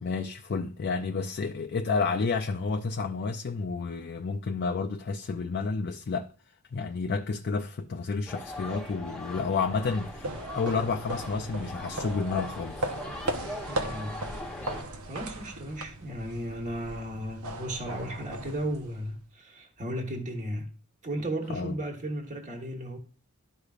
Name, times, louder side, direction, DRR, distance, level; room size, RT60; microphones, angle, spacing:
voice 1, 0.0-6.3 6.7-12.9 21.5-21.7, left 4 dB, 45° left, 0.4 m, -30 dB
sound 1, 8.3-14.8, left 1 dB, 5° left, 1.0 m, -40 dB
sound 2, 9.6-19.2, right 1 dB, 85° right, 1.0 m, -38 dB
voice 2, 13.8-14.3 15.1-20.7 21.0-23.0, right 1 dB, 35° right, 1.3 m, -35 dB
12.5 x 4.9 x 2.4 m
head